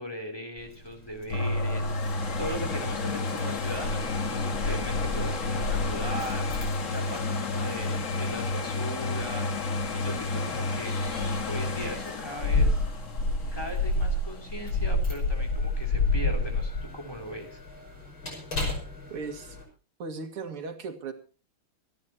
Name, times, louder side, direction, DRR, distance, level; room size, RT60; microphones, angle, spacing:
voice 1, 0.0-11.0 11.4-12.8 13.5-17.6, equal, 10° left, 4 dB, 3.2 m, -39 dB
Keys jangling, 0.6-19.6, left 2 dB, 65° left, 6.4 m, -31 dB
sound 1, 1.3-15.0 15.5-15.6, left 3 dB, 40° left, 1.6 m, -31 dB
voice 2, 19.1-19.6 20.0-21.1, right 4 dB, 90° right, 6 dB, 2.8 m, -37 dB
25.5 x 11.0 x 3.0 m, 0.35 s
omnidirectional pair, 2.4 m